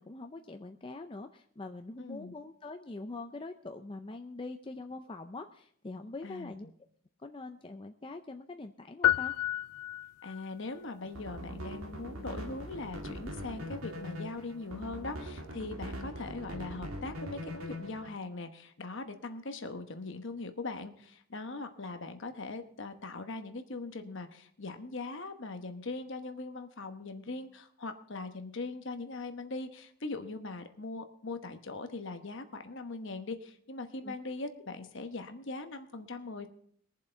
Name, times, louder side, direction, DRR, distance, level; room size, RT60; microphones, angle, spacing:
voice 1, 0.0-6.7 7.2-9.3 34.0-34.2, left 3 dB, 25° left, 6 dB, 0.4 m, -43 dB
voice 2, 2.0-2.3 6.2-6.5 10.2-36.5, left 3 dB, 55° left, 7 dB, 1.1 m, -41 dB
sound 1, 9.0-10.5, left 13 dB, 90° left, 0.4 m, -30 dB
sound 2, 11.0-18.1, equal, 70° right, 2.3 m, -42 dB
22.0 x 7.3 x 4.4 m, 0.63 s
head